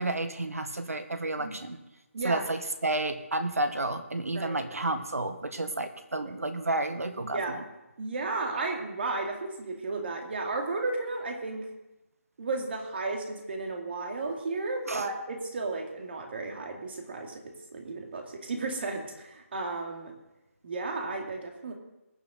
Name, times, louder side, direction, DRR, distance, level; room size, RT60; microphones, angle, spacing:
voice 1, 0.0-1.8 2.2-7.6 14.9-15.0, right 2 dB, 80° right, 9 dB, 1.4 m, -31 dB
voice 2, 2.1-2.5 4.3-4.9 6.2-6.3 7.3-7.6 8.0-11.7 12.4-20.1 20.6-21.7, right 3 dB, 45° right, 2 dB, 2.5 m, -34 dB
21.0 x 7.6 x 3.9 m, 0.98 s
figure-of-eight pair, 155°, 8 cm